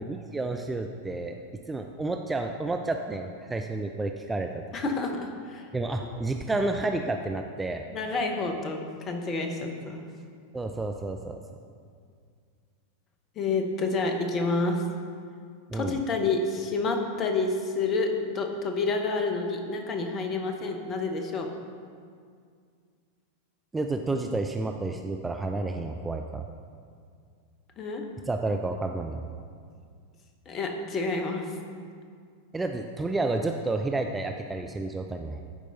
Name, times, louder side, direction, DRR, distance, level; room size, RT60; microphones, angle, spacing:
voice 1, 0.0-1.4 1.7-4.5 5.7-7.8 10.5-11.4 15.7-16.0 23.7-26.5 28.3-29.2 32.5-35.4, right 2 dB, 10° right, 4 dB, 0.4 m, -30 dB
voice 2, 4.7-5.7 7.9-10.1 13.4-14.8 15.7-21.5 27.8-28.0 30.5-31.5, left 3 dB, 30° left, 4 dB, 0.9 m, -29 dB
11.0 x 4.7 x 3.9 m, 2.2 s
figure-of-eight pair, 90°, 0 cm